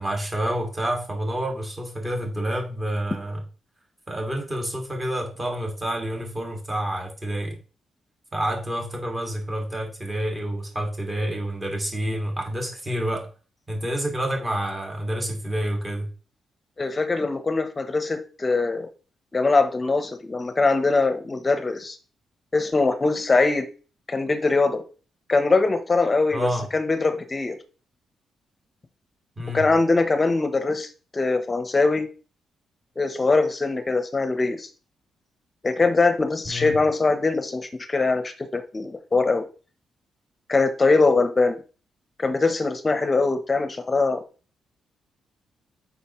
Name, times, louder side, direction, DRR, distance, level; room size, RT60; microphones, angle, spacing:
voice 1, 0.0-3.4 4.1-7.6 8.3-13.3 13.7-16.1 26.3-26.7 29.4-29.7 36.5-36.8, right 1 dB, 20° right, 2.1 m, -28 dB
voice 2, 16.8-18.9 19.3-22.0 22.5-23.7 24.1-24.8 25.3-27.6 29.5-32.1 33.0-34.7 35.6-39.4 40.5-41.6 42.2-44.2, left 3 dB, 20° left, 1.0 m, -22 dB
8.1 x 5.5 x 3.1 m
cardioid pair, 140°, 0 cm